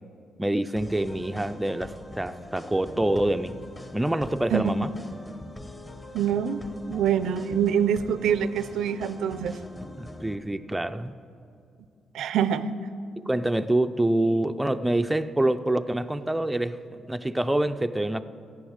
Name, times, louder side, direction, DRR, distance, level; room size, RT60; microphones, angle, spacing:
voice 1, 0.4-3.5 3.9-4.9 10.0-11.1 13.3-18.2, right 1 dB, 10° right, 9 dB, 0.4 m, -26 dB
sound 1, 0.8-10.3, left 1 dB, 15° left, 1.1 m, -43 dB
voice 2, 6.1-6.6 6.9-9.6 12.1-12.7, right 8 dB, 80° right, 14 dB, 0.5 m, -25 dB
14.5 x 8.7 x 6.5 m, 2.4 s
cardioid pair, 90°, 0 cm